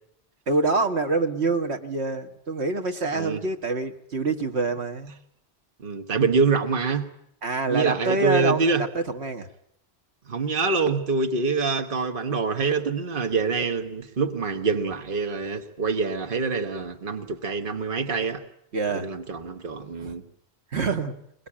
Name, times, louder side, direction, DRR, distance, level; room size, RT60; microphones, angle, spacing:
voice 1, 0.5-5.1 7.4-8.7 8.9-9.5 18.7-19.1 20.0-20.1 20.7-21.1, right 3 dB, 75° right, 1.8 m, -26 dB
voice 2, 5.8-7.1 7.7-8.8 10.3-18.4 18.9-20.2, right 4 dB, 55° right, 1.6 m, -25 dB
23.0 x 20.5 x 8.6 m
omnidirectional pair, 1.1 m